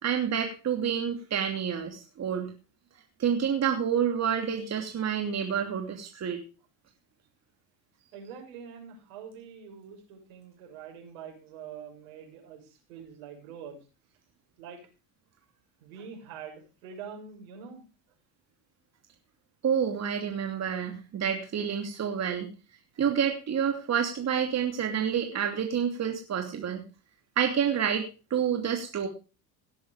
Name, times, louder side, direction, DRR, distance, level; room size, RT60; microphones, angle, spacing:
voice 1, 0.0-2.5 3.2-6.4 19.6-22.5 23.0-26.8 27.4-29.1, right 8 dB, 35° right, 3 dB, 2.9 m, -28 dB
voice 2, 8.1-13.8 14.6-14.9 15.8-17.8, right 7 dB, 75° right, 3 dB, 6.6 m, -45 dB
18.0 x 7.8 x 5.0 m, 0.33 s
hypercardioid pair, 85°, 43 cm